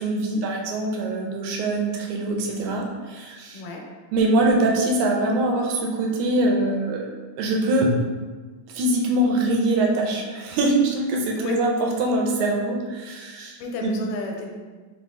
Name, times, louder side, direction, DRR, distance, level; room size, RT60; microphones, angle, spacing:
voice 1, 0.0-3.6 4.1-7.1 7.4-7.9 8.7-13.9, right 2 dB, 75° right, 0 dB, 1.9 m, -23 dB
voice 2, 3.5-3.9 11.4-11.6 13.6-14.5, left 4 dB, 90° left, 1 dB, 2.1 m, -32 dB
5.2 x 2.4 x 3.5 m, 1.4 s
omnidirectional pair, 3.7 m